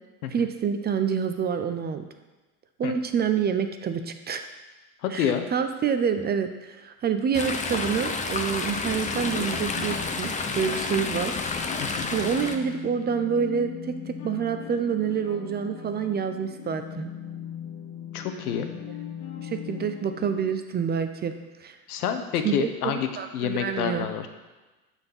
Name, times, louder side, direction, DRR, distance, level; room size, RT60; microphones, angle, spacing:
voice 1, 0.3-2.0 2.8-4.4 5.1-11.3 12.1-17.1 19.4-21.3 21.6-21.8 22.4-24.1, right 7 dB, 20° right, 8 dB, 0.6 m, -27 dB
voice 2, 5.0-5.5 11.8-12.1 18.1-18.7 21.9-23.1 23.3-24.3, left 8 dB, 80° left, 7 dB, 1.2 m, -28 dB
Chatter / Stream, 7.3-12.6, left 4 dB, 15° left, 0.8 m, -30 dB
sound 1, 8.8-20.5, left 9 dB, 60° left, 1.3 m, -40 dB
11.5 x 4.5 x 5.6 m, 1.2 s
hypercardioid pair, 105°, 44 cm